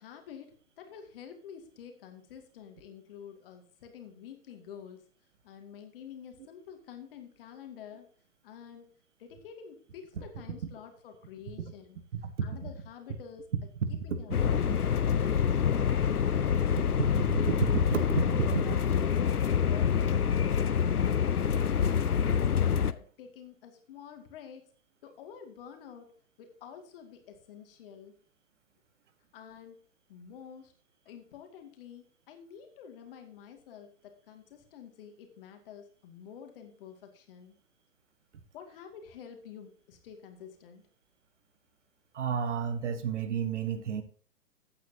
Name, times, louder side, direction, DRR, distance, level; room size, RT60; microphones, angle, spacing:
voice 1, 0.0-5.1 5.4-8.1 8.4-8.9 9.2-12.0 12.4-13.4 14.0-17.3 17.9-22.3 22.9-24.7 25.0-26.1 26.4-28.2 29.3-29.8 30.1-30.7 31.1-37.5 38.5-40.8, left 8 dB, 40° left, 5 dB, 2.3 m, -48 dB
voice 2, 12.1-12.7 13.8-13.9 17.5-18.0 18.5-18.6 42.1-44.0, right 7 dB, 50° right, 11 dB, 1.6 m, -31 dB
sound 1, 14.3-22.9, left 7 dB, 85° left, 0.8 m, -26 dB
14.5 x 8.7 x 2.8 m, 0.43 s
figure-of-eight pair, 120°, 44 cm